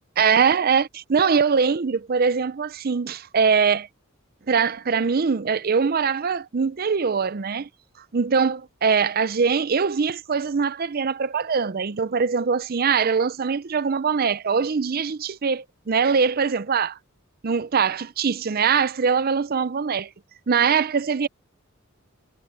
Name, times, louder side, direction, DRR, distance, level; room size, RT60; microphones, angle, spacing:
voice 1, 0.2-3.9 4.5-7.7 8.1-17.0 17.4-20.1 20.5-21.3, right 5 dB, 45° right, 0.6 m, -22 dB
head